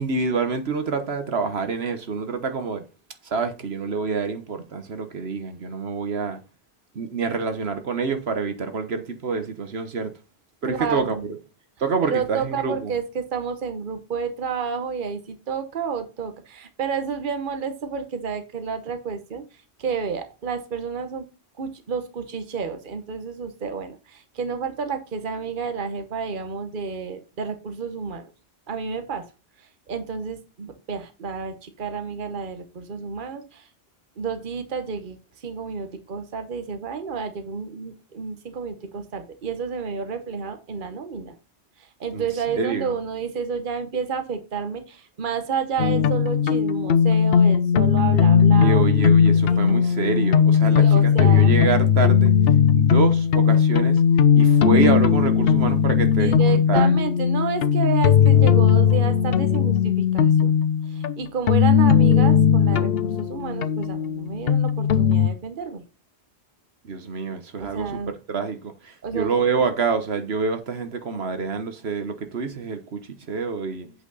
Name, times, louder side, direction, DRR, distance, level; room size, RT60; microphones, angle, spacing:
voice 1, 0.0-2.8 3.2-6.4 6.9-10.1 10.6-11.4 11.8-12.9 42.1-42.3 42.5-43.0 48.5-52.3 52.7-54.0 54.4-56.9 66.8-68.0 68.3-73.0 73.3-73.9, right 5 dB, 70° right, 1.3 m, -27 dB
voice 2, 10.7-11.2 12.0-21.3 21.6-28.3 28.7-29.3 29.6-33.7 34.2-41.3 41.8-48.8 49.5-49.8 50.6-51.5 56.2-60.5 60.9-65.8 67.6-68.1 69.0-69.6, right 6 dB, 50° right, 1.2 m, -30 dB
sound 1, 45.8-65.3, left 7 dB, 65° left, 0.8 m, -18 dB
8.3 x 5.8 x 4.0 m
omnidirectional pair, 1.1 m